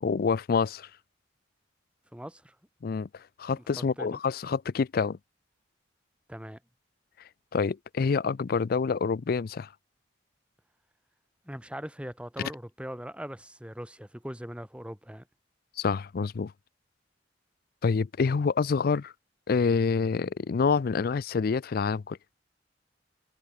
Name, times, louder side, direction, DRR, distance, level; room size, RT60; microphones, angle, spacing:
voice 1, 0.0-0.9 2.8-3.1 3.4-5.2 7.5-9.7 15.8-16.5 17.8-19.1 19.5-22.2, left 5 dB, 50° left, 0.4 m, -27 dB
voice 2, 2.1-2.6 3.5-3.6 4.0-4.2 6.3-6.6 11.4-15.3, equal, 5° right, 3.2 m, -40 dB
head